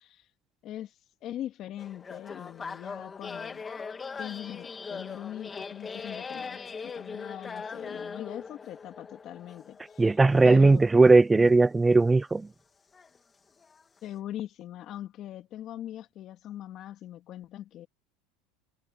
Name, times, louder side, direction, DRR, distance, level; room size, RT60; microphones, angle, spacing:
voice 1, 0.6-0.9 1.2-3.6 4.2-10.1 10.4-10.8 14.0-17.9, left 12 dB, 40° left, 2.4 m, -41 dB
sound 1, 1.8-11.1 11.8-11.9 12.9-13.2 13.6-13.8, left 5 dB, 20° left, 2.1 m, -41 dB
voice 2, 10.0-12.5, right 3 dB, 10° right, 0.3 m, -19 dB
supercardioid pair, 135°, 0 cm